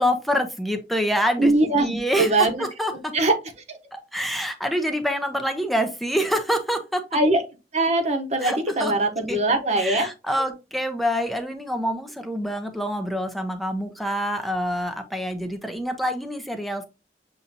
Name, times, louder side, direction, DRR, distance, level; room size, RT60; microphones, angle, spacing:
voice 1, 0.0-3.1 3.9-7.0 8.4-8.9 9.3-9.4 9.8-16.8, equal, ahead, 6 dB, 0.6 m, -26 dB
voice 2, 1.4-2.6 3.1-3.3 3.7-3.8 7.1-7.4 7.7-10.1, right 2 dB, 40° right, 5 dB, 0.9 m, -21 dB
7.0 x 2.7 x 2.6 m, 0.27 s
head